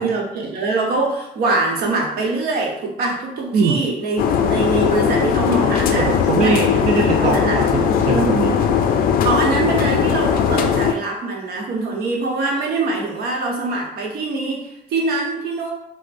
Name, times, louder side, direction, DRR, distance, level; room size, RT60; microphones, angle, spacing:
voice 1, 0.0-4.2 4.5-6.5 6.8-7.6 9.2-15.7, right 3 dB, 65° right, -1 dB, 0.9 m, -23 dB
voice 2, 3.5-3.9 6.0-8.6, right 4 dB, 45° right, 0 dB, 0.4 m, -21 dB
sound 1, 4.2-10.9, left 7 dB, 60° left, 0.4 m, -18 dB
4.7 x 2.1 x 2.5 m, 0.80 s
cardioid pair, 110°, 17 cm